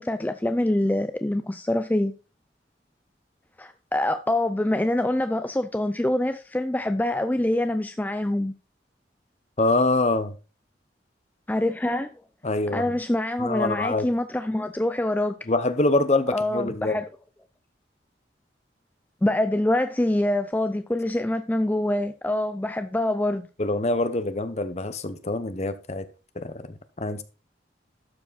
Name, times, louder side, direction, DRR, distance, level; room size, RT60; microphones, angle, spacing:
voice 1, 0.0-2.1 3.6-8.5 11.5-12.1 12.7-15.3 16.3-17.1 19.2-23.5, left 1 dB, 10° left, 0.4 m, -25 dB
voice 2, 9.6-10.3 12.4-12.9 13.4-14.1 15.5-17.0 23.6-26.1 26.4-27.2, left 2 dB, 35° left, 0.8 m, -25 dB
12.5 x 4.8 x 4.1 m
head